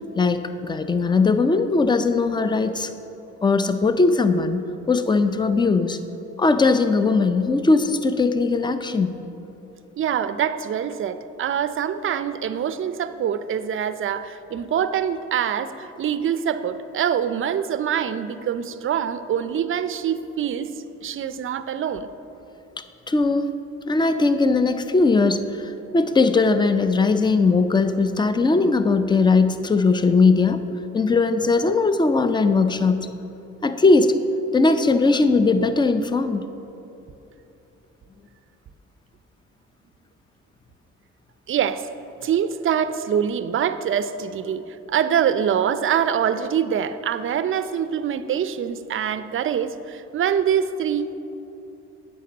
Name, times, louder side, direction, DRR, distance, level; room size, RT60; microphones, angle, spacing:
voice 1, 0.2-2.9 3.4-6.0 6.4-9.2 23.1-23.5 23.9-30.7 30.9-33.1 33.6-34.1 34.5-36.5, left 3 dB, 15° left, 10 dB, 0.5 m, -19 dB
voice 2, 10.0-20.7 21.0-22.1 41.5-41.9 42.2-51.1, right 8 dB, 45° right, 12 dB, 0.5 m, -24 dB
8.4 x 5.3 x 7.2 m, 3.0 s
cardioid pair, 90°, 30 cm